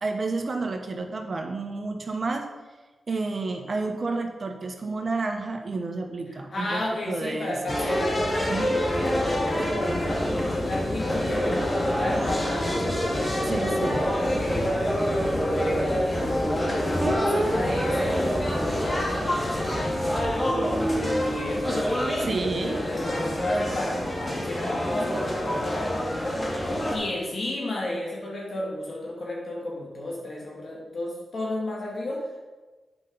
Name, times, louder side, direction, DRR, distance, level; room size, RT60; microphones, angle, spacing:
voice 1, 0.0-2.5 3.1-6.8 7.1-7.8 8.5-8.8 13.4-14.1 22.2-22.8, right 3 dB, 50° right, 4 dB, 1.2 m, -30 dB
voice 2, 6.3-9.6 10.4-14.8 15.3-16.0 17.1-20.2 20.9-26.5 26.9-32.4, left 1 dB, 60° left, -3 dB, 3.3 m, -33 dB
sound 1, 7.7-27.0, equal, 30° left, 2.5 m, -26 dB
sound 2, 17.0-19.7 20.3-22.8, right 1 dB, 25° right, 1.3 m, -32 dB
9.0 x 5.5 x 5.4 m, 1.3 s
cardioid pair, 55°, 0 cm